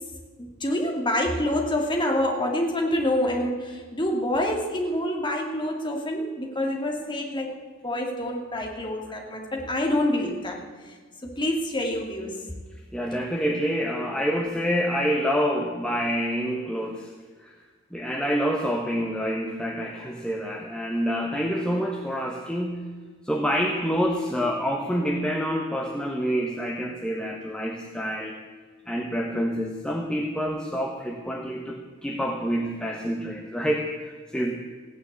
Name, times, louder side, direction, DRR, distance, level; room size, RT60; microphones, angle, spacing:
voice 1, 0.4-7.5 7.8-10.6 11.4-12.3, left 1 dB, 20° left, 1 dB, 2.5 m, -26 dB
voice 2, 12.9-17.1 17.4-17.6 17.9-22.8 23.3-28.4 28.9-34.5, equal, 5° left, 1 dB, 1.0 m, -27 dB
16.0 x 9.7 x 8.2 m, 1.5 s
head